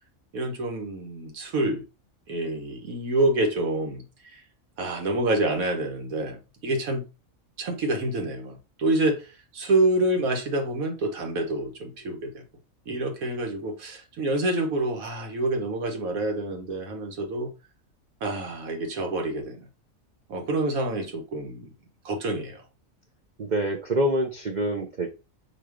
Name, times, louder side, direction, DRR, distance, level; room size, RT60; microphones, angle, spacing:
voice 1, 0.3-1.8 2.3-4.4 4.8-7.0 7.6-12.4 12.9-17.5 18.2-19.7 20.3-21.7 22.0-22.6, right 2 dB, 90° right, 1.5 m, -27 dB
voice 2, 23.4-25.1, right 1 dB, 55° right, 0.5 m, -26 dB
4.8 x 2.3 x 4.8 m
omnidirectional pair, 1.4 m